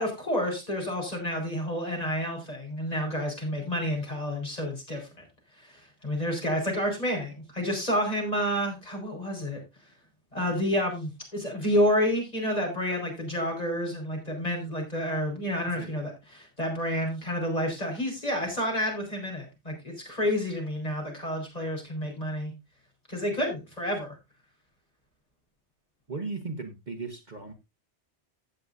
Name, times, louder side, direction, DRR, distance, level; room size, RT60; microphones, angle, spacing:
voice 1, 0.0-5.2 5.6-9.6 10.3-22.5 23.1-24.1, equal, 35° left, 1 dB, 4.8 m, -29 dB
voice 2, 26.1-27.5, right 3 dB, 40° right, 5 dB, 1.3 m, -36 dB
16.0 x 7.9 x 2.6 m, 0.24 s
omnidirectional pair, 1.2 m